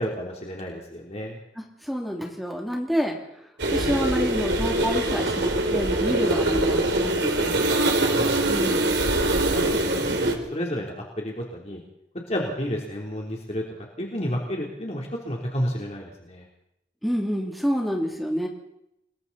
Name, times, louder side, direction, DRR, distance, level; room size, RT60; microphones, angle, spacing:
voice 1, 0.0-1.4 8.0-8.7 9.5-11.8 12.3-16.5, equal, 40° left, -1 dB, 3.5 m, -31 dB
voice 2, 1.8-3.2 3.7-7.7 8.5-8.9 17.0-18.5, equal, ahead, 0 dB, 2.8 m, -28 dB
sound 1, 3.6-10.4, right 2 dB, 85° right, 3.1 m, -23 dB
30.0 x 21.0 x 4.2 m, 0.81 s
head